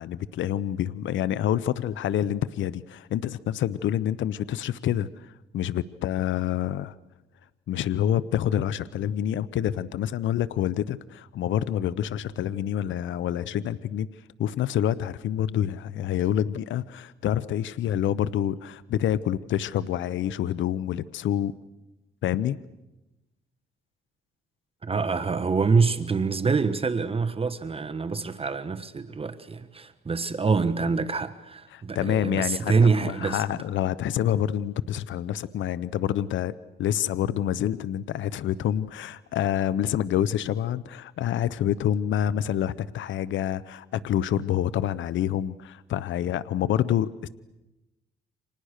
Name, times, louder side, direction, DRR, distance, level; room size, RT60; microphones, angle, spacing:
voice 1, 0.0-6.9 7.7-14.1 14.4-21.5 22.2-22.6 31.7-36.5 36.8-47.3, left 10 dB, 70° left, 0.8 m, -27 dB
voice 2, 24.8-33.4, right 4 dB, 30° right, 1.3 m, -25 dB
29.5 x 26.0 x 6.6 m
cardioid pair, 90°, 20 cm